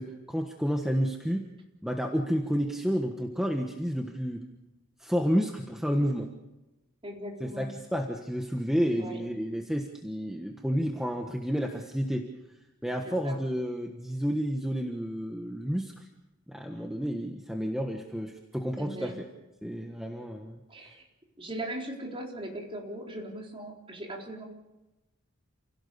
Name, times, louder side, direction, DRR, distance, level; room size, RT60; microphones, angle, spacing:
voice 1, 0.0-1.4 1.8-4.4 5.0-6.3 7.4-12.3 12.8-16.0 16.5-19.3 19.6-20.6, equal, ahead, 2 dB, 1.4 m, -30 dB
voice 2, 7.0-7.7 9.0-9.2 13.0-13.4 18.8-19.1 20.7-21.1 21.4-24.4, right 1 dB, 25° right, 0 dB, 4.1 m, -39 dB
29.0 x 17.5 x 7.0 m, 1.0 s
head